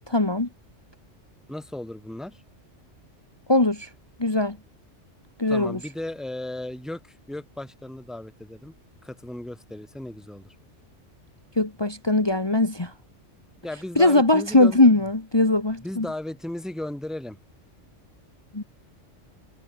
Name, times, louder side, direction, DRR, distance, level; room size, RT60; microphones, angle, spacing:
voice 1, 0.1-0.5 3.5-3.9 4.2-4.6 5.4-5.8 11.6-12.9 13.9-16.1 18.5-18.6, left 2 dB, 20° left, 1.5 m, -20 dB
voice 2, 1.5-2.4 5.5-8.7 9.0-10.5 13.6-15.0 15.8-17.4, left 1 dB, ahead, 1.7 m, -35 dB
omnidirectional pair, 1.3 m